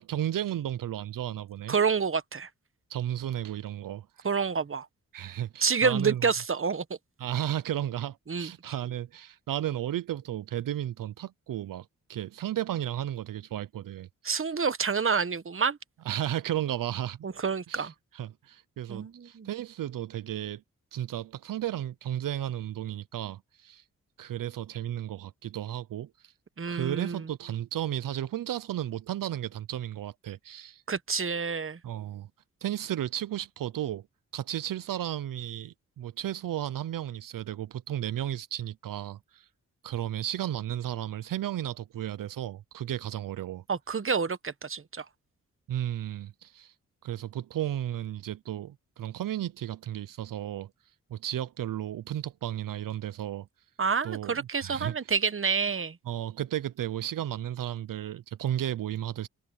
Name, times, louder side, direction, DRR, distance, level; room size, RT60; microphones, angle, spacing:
voice 1, 0.0-1.8 2.9-4.3 5.1-6.3 7.2-14.1 16.0-17.2 17.7-20.6 20.9-23.8 24.2-26.3 26.7-30.8 31.8-32.3 32.6-34.0 34.3-39.5 39.8-43.6 45.7-46.7 47.0-50.7 51.1-53.5 54.0-55.1 56.1-59.3, right 12 dB, 80° right, 0.7 m, -34 dB
voice 2, 1.7-2.5 4.2-4.9 5.6-6.8 8.3-8.5 14.2-15.8 17.2-17.9 18.9-19.5 26.6-27.2 30.9-31.8 43.7-45.0 53.8-56.0, right 5 dB, 40° right, 1.2 m, -28 dB
cardioid pair, 50°, 33 cm